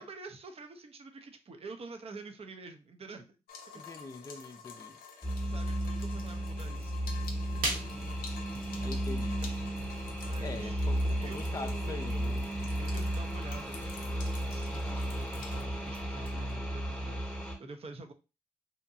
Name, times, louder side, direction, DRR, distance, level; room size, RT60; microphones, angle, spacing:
voice 1, 0.0-3.3 3.7-3.8 5.4-7.0 7.5-7.9 10.2-10.8 11.2-12.3 12.8-18.1, right 3 dB, 40° right, 0.6 m, -48 dB
sound 1, 3.5-15.6, left 6 dB, 90° left, 0.4 m, -50 dB
voice 2, 3.8-5.0 8.8-9.4 10.4-12.9 16.3-16.7, left 3 dB, 25° left, 0.4 m, -44 dB
sound 2, 5.2-17.6, right 1 dB, 5° left, 0.9 m, -34 dB
sound 3, 7.1-16.5, right 1 dB, 75° right, 0.9 m, -44 dB
2.8 x 2.2 x 2.6 m
supercardioid pair, 40°, 15 cm